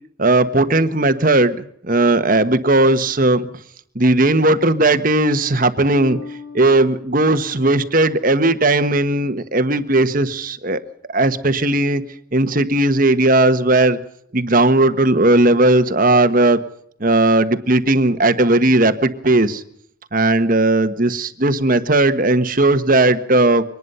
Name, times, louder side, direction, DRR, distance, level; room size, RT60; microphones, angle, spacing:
voice 1, 0.2-3.5 3.9-6.2 6.5-10.8 11.1-12.0 12.3-14.0 14.3-16.6 17.0-19.6 20.1-23.6, right 2 dB, 40° right, 10 dB, 1.4 m, -16 dB
Bass guitar, 5.9-9.0, left 2 dB, 75° left, 3.4 m, -38 dB
23.5 x 19.5 x 5.6 m, 0.67 s
head